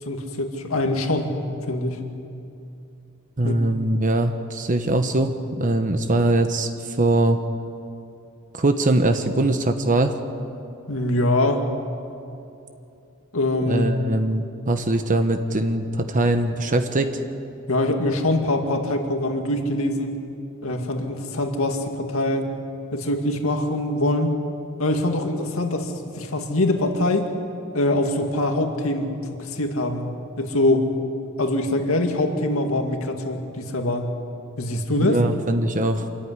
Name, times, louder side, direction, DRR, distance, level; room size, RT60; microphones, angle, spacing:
voice 1, 0.0-1.4 1.7-2.0 3.4-3.6 10.9-11.7 13.3-14.0 17.7-20.2 20.6-22.5 22.9-24.3 24.8-27.3 27.7-29.1 29.4-30.1 30.4-30.9 31.4-34.1 34.6-35.2, left 1 dB, 75° left, 4 dB, 2.2 m, -23 dB
voice 2, 3.4-7.4 8.5-10.1 13.6-17.2 35.0-36.1, right 2 dB, 40° right, 7 dB, 1.0 m, -22 dB
26.5 x 14.0 x 9.8 m, 2.7 s
head